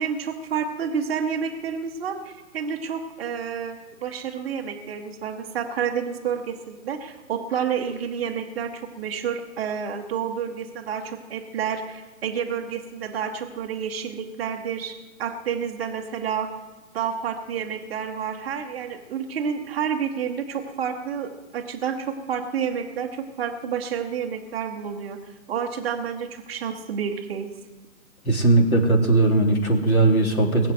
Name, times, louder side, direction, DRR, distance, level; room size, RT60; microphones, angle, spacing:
voice 1, 0.0-16.5 16.9-25.2 25.5-27.5, right 7 dB, 5° right, -9 dB, 0.5 m, -29 dB
voice 2, 28.3-30.7, right 2 dB, 85° left, 2 dB, 3.6 m, -19 dB
20.0 x 7.4 x 8.0 m, 1.2 s
hypercardioid pair, 145°, 41 cm